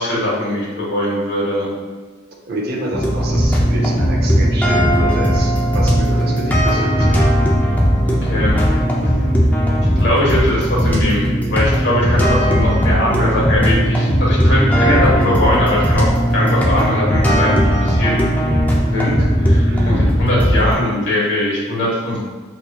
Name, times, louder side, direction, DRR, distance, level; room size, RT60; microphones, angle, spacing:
voice 1, 0.0-1.7 8.1-8.6 10.0-18.3 18.9-22.2, left 1 dB, 55° left, -5 dB, 1.2 m, -20 dB
voice 2, 2.5-7.4 19.6-20.8, right 1 dB, 50° right, -1 dB, 0.6 m, -28 dB
sound 1, 2.9-20.7, equal, 10° left, 0.4 m, -16 dB
4.5 x 3.0 x 2.2 m, 1.4 s
head